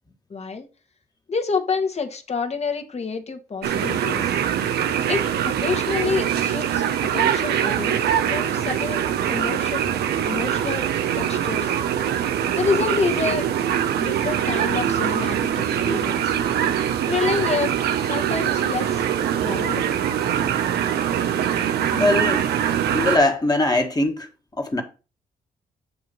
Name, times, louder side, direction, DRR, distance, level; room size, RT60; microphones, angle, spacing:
voice 1, 0.3-0.7 1.3-4.4 5.1-6.8 7.1-8.0 8.3-9.8 10.2-10.9 11.1-11.7 12.5-13.5 14.0-16.4 17.1-17.7 18.1-19.0 19.4-19.9, left 5 dB, 40° left, 1.3 m, -28 dB
sound 1, 3.6-23.2, right 9 dB, 85° right, 0.7 m, -23 dB
voice 2, 21.9-22.4 22.9-24.3 24.6-24.8, left 2 dB, 25° left, 1.6 m, -21 dB
8.5 x 2.9 x 5.3 m
cardioid pair, 65°, 16 cm